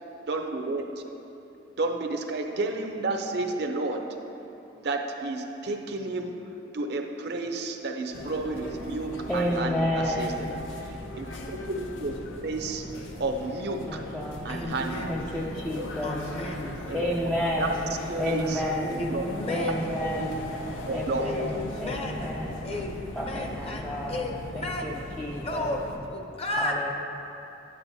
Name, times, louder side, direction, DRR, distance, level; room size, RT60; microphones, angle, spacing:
voice 1, 0.2-0.9 1.8-4.0 4.7-6.4 6.7-12.8 13.2-14.0 14.4-15.0 15.8-16.1 16.9-17.3 17.6-17.7 18.1-18.6 18.9-19.3 20.0-20.3 20.9-21.3, right 3 dB, 55° right, 4 dB, 0.6 m, -31 dB
sound 1, 8.1-26.0, left 1 dB, 85° left, 0.7 m, -39 dB
voice 2, 9.3-10.5 13.8-14.5 15.1-16.2 16.9-17.9 18.2-19.1 19.5-20.5 20.9-22.7 23.1-25.8 26.6-26.9, left 1 dB, 5° left, -4 dB, 0.3 m, -31 dB
voice 3, 14.5-15.3 16.0-16.7 18.8-19.9 21.2-22.4 22.6-25.0 25.4-26.7, left 1 dB, 30° left, 1 dB, 0.7 m, -34 dB
9.3 x 8.8 x 2.7 m, 2.9 s
head